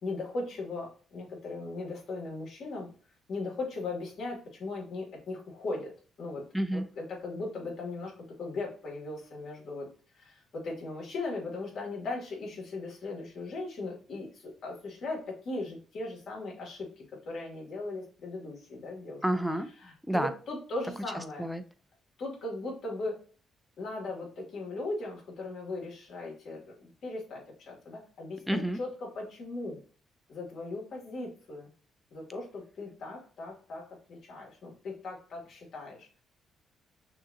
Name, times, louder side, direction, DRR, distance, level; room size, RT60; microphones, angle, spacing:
voice 1, 0.0-2.9 3.3-5.9 6.2-6.5 6.7-9.9 10.1-19.2 19.8-21.5 22.2-23.2 23.8-29.8 30.3-31.7 32.1-36.2, left 2 dB, 65° left, 2.4 m, -38 dB
voice 2, 6.5-6.8 19.2-19.7 20.1-20.3 21.4-21.6 28.5-28.8, right 1 dB, ahead, 0.6 m, -29 dB
6.2 x 2.8 x 2.8 m
cardioid pair, 90°, 0 cm